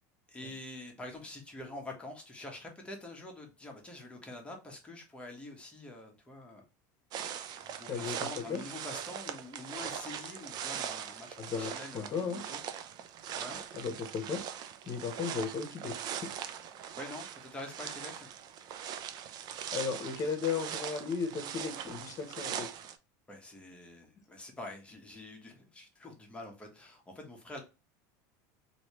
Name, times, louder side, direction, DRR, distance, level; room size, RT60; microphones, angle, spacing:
voice 1, 0.3-6.6 7.6-12.6 13.4-13.6 17.0-18.3 23.3-27.6, left 2 dB, 10° left, 1.2 m, -46 dB
sound 1, 7.1-23.0, right 9 dB, 45° right, 0.5 m, -41 dB
voice 2, 7.9-8.6 11.4-12.4 13.7-14.4 14.9-15.9 19.7-22.7, left 5 dB, 35° left, 1.0 m, -35 dB
3.0 x 2.8 x 3.0 m
supercardioid pair, 115°, 9 cm